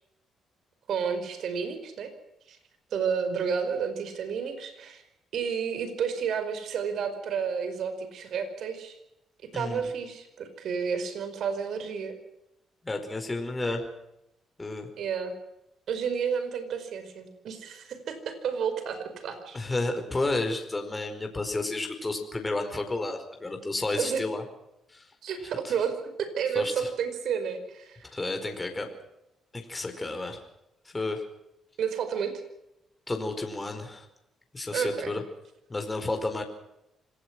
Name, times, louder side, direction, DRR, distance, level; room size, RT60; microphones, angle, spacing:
voice 1, 0.9-2.1 2.5-2.6 2.9-5.0 5.3-9.0 9.5-12.2 15.0-15.4 15.9-19.6 24.0-24.2 25.2-28.0 31.8-32.3 34.7-35.1, right 6 dB, 70° right, 10 dB, 5.0 m, -31 dB
voice 2, 12.8-13.9 14.6-14.9 19.5-24.4 24.9-25.0 25.6-25.7 26.5-26.9 28.1-28.9 29.5-30.4 30.9-31.2 33.1-34.0 34.5-35.2 35.7-36.4, left 2 dB, 20° left, 5 dB, 4.8 m, -31 dB
26.5 x 18.5 x 6.2 m, 0.85 s
cardioid pair, 90°, 0 cm